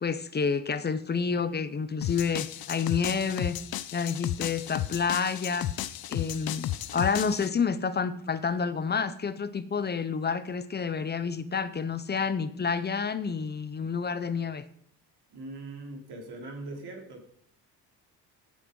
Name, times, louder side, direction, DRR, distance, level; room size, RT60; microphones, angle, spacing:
voice 1, 0.0-3.6 3.9-5.7 6.1-14.6, left 5 dB, 25° left, 14 dB, 0.7 m, -29 dB
sound 1, 2.0-7.5, left 12 dB, 55° left, 0.8 m, -34 dB
voice 2, 15.3-17.2, right 2 dB, 60° right, 2 dB, 3.9 m, -41 dB
17.0 x 8.8 x 5.4 m, 0.65 s
cardioid pair, 160°, 43 cm